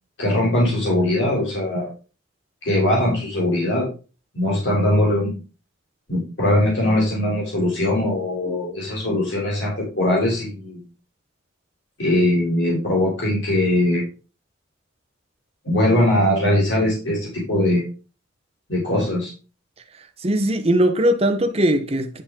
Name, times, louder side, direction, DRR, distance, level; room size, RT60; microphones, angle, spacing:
voice 1, 0.2-1.9 2.6-3.9 4.3-5.4 6.1-10.8 12.0-14.1 15.6-17.8 18.7-19.3, left 1 dB, 60° left, 3.4 m, -21 dB
voice 2, 20.0-22.2, right 1 dB, 30° right, 1.0 m, -20 dB
10.5 x 5.0 x 3.8 m
head